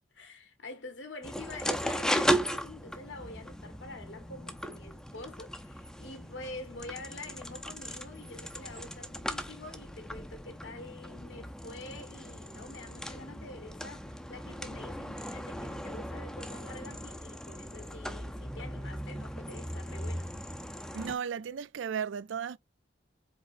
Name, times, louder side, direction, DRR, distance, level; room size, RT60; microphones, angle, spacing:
voice 1, 0.1-20.4, left 2 dB, 75° left, 1.4 m, -46 dB
sound 1, 1.2-21.1, equal, 5° left, 0.5 m, -37 dB
voice 2, 20.9-22.6, right 7 dB, 80° right, 0.4 m, -35 dB
5.0 x 4.2 x 2.6 m
head